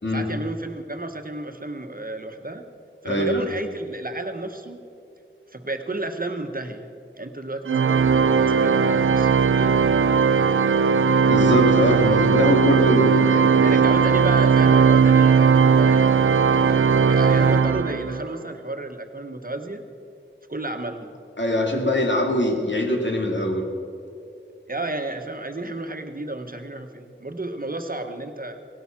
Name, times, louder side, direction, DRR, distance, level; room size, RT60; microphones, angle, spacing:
voice 1, 0.1-2.6 3.0-4.8 5.5-6.9 7.1-8.1 8.6-10.3 13.6-19.8 20.5-21.2 24.7-28.6, right 2 dB, 45° right, 6 dB, 1.3 m, -32 dB
voice 2, 3.0-3.4 11.3-13.7 21.4-23.6, left 1 dB, 65° left, 1 dB, 2.5 m, -22 dB
Organ, 7.7-18.3, right 6 dB, 85° right, 0.4 m, -18 dB
18.5 x 12.0 x 6.0 m, 2.6 s
wide cardioid pair, 45°, 20 cm